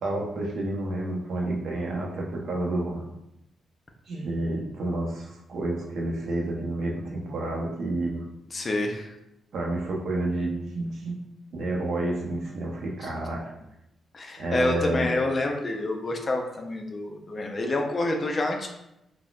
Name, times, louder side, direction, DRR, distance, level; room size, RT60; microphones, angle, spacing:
voice 1, 0.0-3.0 4.1-8.2 9.5-11.2 11.5-13.5 14.4-15.1, right 2 dB, 70° right, -2 dB, 0.6 m, -30 dB
voice 2, 8.5-9.1 13.0-13.1 14.1-18.7, left 2 dB, 30° left, 2 dB, 0.4 m, -28 dB
3.9 x 2.1 x 2.3 m, 0.85 s
cardioid pair, 135°, 0 cm